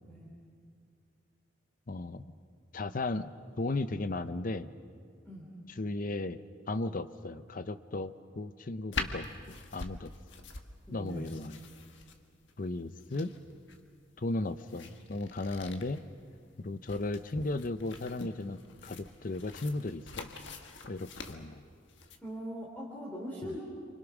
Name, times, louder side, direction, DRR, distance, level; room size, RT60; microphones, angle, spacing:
voice 1, 1.9-2.2 2.7-3.3 3.6-4.7 5.8-6.4 6.7-9.3 9.7-10.1 10.9-11.6 12.6-13.3 14.2-16.0 16.6-20.3 20.9-21.6 23.5-23.6, left 2 dB, 45° left, 12 dB, 0.7 m, -35 dB
sound 1, 8.9-22.2, left 3 dB, 65° left, 1.6 m, -45 dB
voice 2, 10.9-11.2 22.2-23.6, equal, 10° left, -3 dB, 3.2 m, -41 dB
28.5 x 25.5 x 6.2 m, 2.3 s
head